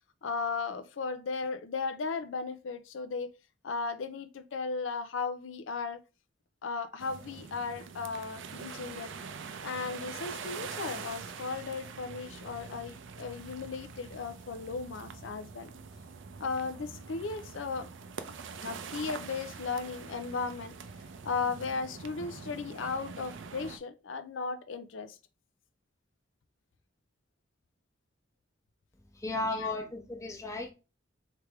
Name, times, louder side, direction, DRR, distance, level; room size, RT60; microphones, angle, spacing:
voice 1, 0.2-3.3 3.6-6.0 6.6-9.1 9.6-15.7 16.4-17.9 18.6-20.7 21.2-25.2 29.5-29.8, left 4 dB, 85° left, 0.5 m, -36 dB
sound 1, 7.0-23.8, right 5 dB, 80° right, 0.5 m, -44 dB
voice 2, 29.1-30.7, left 1 dB, 15° left, 0.9 m, -35 dB
3.3 x 3.3 x 4.6 m
head